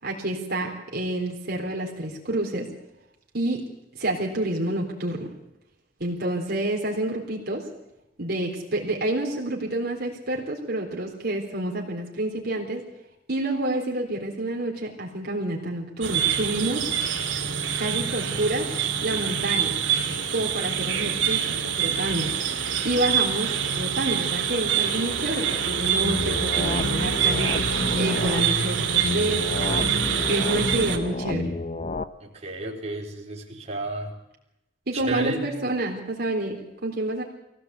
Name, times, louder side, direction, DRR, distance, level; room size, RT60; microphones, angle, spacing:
voice 1, 0.0-2.7 3.3-3.6 3.9-5.3 6.0-7.7 8.2-12.8 13.3-16.9 17.8-18.7 19.0-19.8 20.3-22.3 22.8-27.5 28.0-29.8 30.3-31.5 34.9-37.2, right 1 dB, 60° right, -1 dB, 3.8 m, -28 dB
sound 1, 16.0-31.0, right 7 dB, 80° right, 2.8 m, -25 dB
sound 2, 26.0-28.4 29.0-32.0, left 2 dB, 40° left, 0.9 m, -30 dB
voice 2, 32.2-34.1 34.9-35.4, right 2 dB, 35° right, -2 dB, 4.1 m, -32 dB
23.0 x 17.0 x 8.2 m, 0.89 s
head